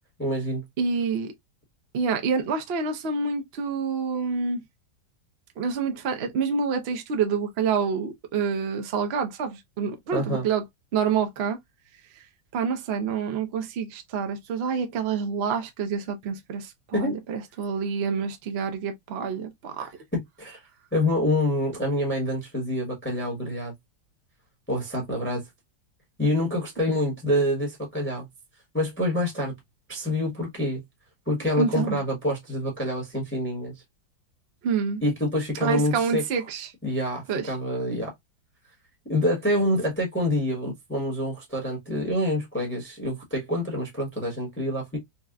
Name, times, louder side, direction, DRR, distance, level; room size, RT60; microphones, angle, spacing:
voice 1, 0.2-0.6 10.1-10.5 16.9-17.2 19.8-20.6 20.9-23.7 24.7-25.5 26.2-28.3 28.7-29.5 29.9-30.8 31.3-33.7 35.0-36.2 36.8-38.1 39.1-45.0, left 1 dB, 10° left, 0.8 m, -26 dB
voice 2, 0.8-1.3 1.9-4.6 5.6-10.6 10.9-11.6 12.5-19.9 31.6-32.0 34.6-35.0 35.6-36.7 37.3-37.5, right 6 dB, 60° right, 0.6 m, -27 dB
4.0 x 2.1 x 2.3 m
omnidirectional pair, 1.9 m